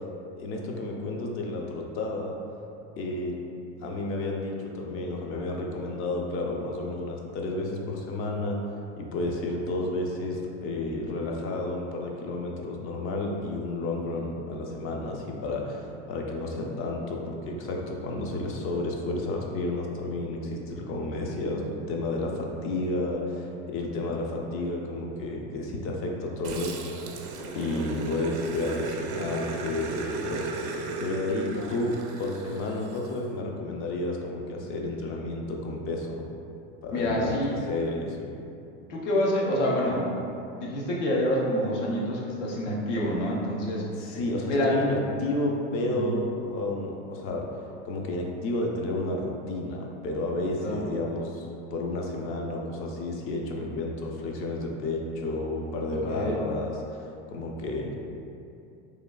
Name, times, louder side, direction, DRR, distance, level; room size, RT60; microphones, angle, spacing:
voice 1, 0.4-2.4 3.0-3.4 3.8-8.6 9.0-27.2 27.5-30.7 31.0-36.2 36.8-38.3 44.0-47.5 47.8-57.9, left 2 dB, 40° left, 0 dB, 0.4 m, -31 dB
Growling, 26.4-33.1, right 3 dB, 70° right, 0.5 m, -36 dB
voice 2, 36.9-37.6 38.9-40.1 40.5-43.8 44.5-44.8 45.9-46.2 50.6-50.9 55.9-56.5, equal, 85° left, -3 dB, 0.7 m, -27 dB
3.1 x 2.3 x 2.2 m, 2.6 s
hypercardioid pair, 100°, 35 cm